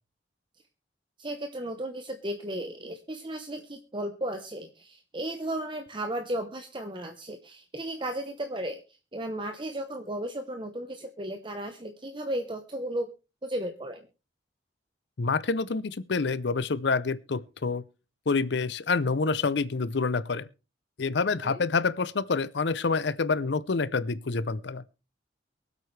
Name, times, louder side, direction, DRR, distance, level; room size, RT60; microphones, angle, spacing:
voice 1, 1.2-13.1 13.4-14.1 21.4-21.6, right 1 dB, 25° right, 0.9 m, -35 dB
voice 2, 15.2-17.8 18.3-20.5 21.0-24.8, left 4 dB, 65° left, 0.6 m, -27 dB
23.5 x 8.3 x 3.3 m
head